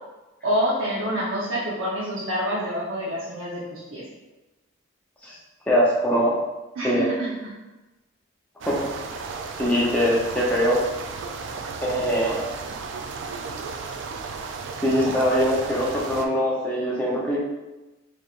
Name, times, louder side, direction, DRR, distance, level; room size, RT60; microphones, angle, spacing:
voice 1, 0.4-4.0 6.8-7.3, equal, 85° right, -8 dB, 0.9 m, -27 dB
voice 2, 5.7-6.4 6.8-7.0 8.7-8.9 9.6-10.8 11.8-12.5 14.8-17.4, equal, 5° left, -6 dB, 0.6 m, -22 dB
sound 1, 8.6-16.3, right 4 dB, 60° right, 0.4 m, -34 dB
4.5 x 3.4 x 2.5 m, 1.1 s
head